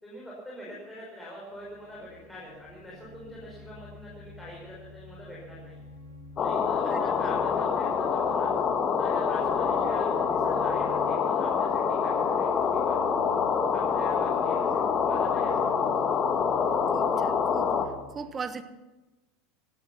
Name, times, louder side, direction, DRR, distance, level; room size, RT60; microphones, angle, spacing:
voice 1, 0.0-5.8 6.4-8.5 9.0-13.2 13.7-15.7 18.2-18.3, equal, 10° left, -6 dB, 5.8 m, -44 dB
sound 1, 1.5-18.0, left 2 dB, 90° left, 7.5 m, -48 dB
sound 2, 6.4-17.9, left 6 dB, 35° left, 1.5 m, -26 dB
voice 2, 6.8-7.3 16.9-17.7 18.1-18.6, right 5 dB, 25° right, 11 dB, 1.3 m, -39 dB
17.5 x 13.0 x 5.9 m, 1.1 s
figure-of-eight pair, 80°, 0 cm